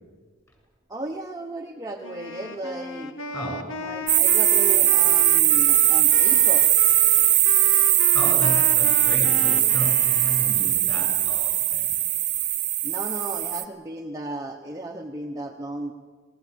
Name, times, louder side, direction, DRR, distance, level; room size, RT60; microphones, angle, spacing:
voice 1, 0.9-3.1 3.8-6.7 12.8-15.9, right 2 dB, 20° right, 1 dB, 1.0 m, -34 dB
Wind instrument woodwind instrument, 2.0-10.8, left 3 dB, 85° left, 1.6 m, -36 dB
voice 2, 3.3-3.6 8.1-11.9, equal, 15° left, 1 dB, 7.9 m, -33 dB
sound 1, 4.1-13.6, right 13 dB, 40° right, 1.1 m, -20 dB
27.0 x 18.5 x 7.0 m, 1.5 s
head